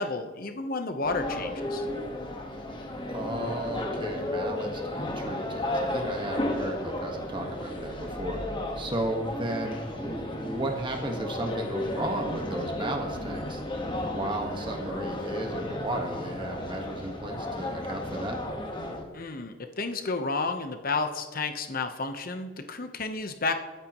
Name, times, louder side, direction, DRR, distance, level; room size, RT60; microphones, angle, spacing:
voice 1, 0.0-1.9 19.1-23.5, left 3 dB, 45° left, 7 dB, 1.0 m, -31 dB
sound 1, 1.0-19.0, left 1 dB, 25° left, 1.5 m, -34 dB
voice 2, 3.1-8.4 8.8-13.6 14.0-18.4, right 1 dB, 25° right, 2 dB, 1.5 m, -34 dB
21.5 x 9.3 x 3.1 m, 1.3 s
head